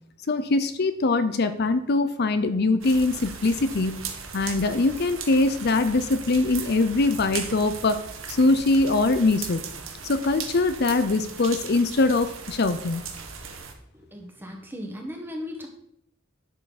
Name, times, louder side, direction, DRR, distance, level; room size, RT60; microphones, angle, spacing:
voice 1, 0.3-4.0 4.3-8.0 8.3-9.6 10.0-13.0, left 3 dB, 55° left, 10 dB, 0.6 m, -22 dB
sound 1, 2.8-13.7, right 6 dB, 85° right, 1.5 m, -38 dB
voice 2, 13.9-15.7, left 1 dB, 10° right, 1 dB, 1.6 m, -37 dB
11.0 x 7.0 x 4.2 m, 0.74 s
head